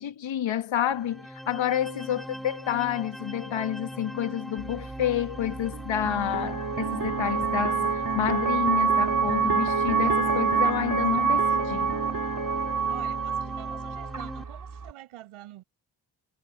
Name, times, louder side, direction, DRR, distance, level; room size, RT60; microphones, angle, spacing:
voice 1, 0.0-12.0, left 10 dB, 65° left, 2.0 m, -29 dB
sound 1, 0.9-14.4, equal, ahead, 3.3 m, -40 dB
voice 2, 2.2-2.5 12.9-15.6, right 15 dB, 85° right, 7.2 m, -46 dB
sound 2, 4.6-14.9, right 5 dB, 40° right, 3.9 m, -27 dB
hypercardioid pair, 40°, 49 cm